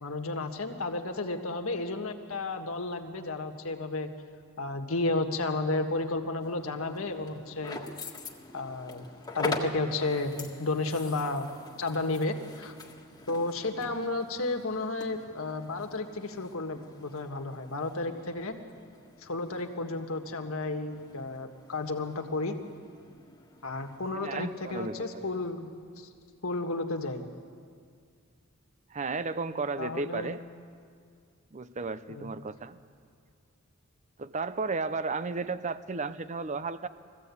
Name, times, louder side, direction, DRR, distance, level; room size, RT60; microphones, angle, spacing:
voice 1, 0.0-4.1 4.6-7.8 8.5-9.0 9.3-11.5 11.8-12.7 13.3-18.6 19.2-22.5 23.6-26.1 26.4-27.2 29.8-30.4 32.1-32.3, left 2 dB, 85° left, 5 dB, 1.6 m, -32 dB
Walking and Packing Up Gear in Car, 6.4-25.5, left 2 dB, 20° left, 1.6 m, -44 dB
voice 2, 24.2-25.3 28.9-30.4 31.5-32.8 34.2-36.9, right 4 dB, 35° right, 13 dB, 0.6 m, -34 dB
21.5 x 15.0 x 8.4 m, 2.2 s
head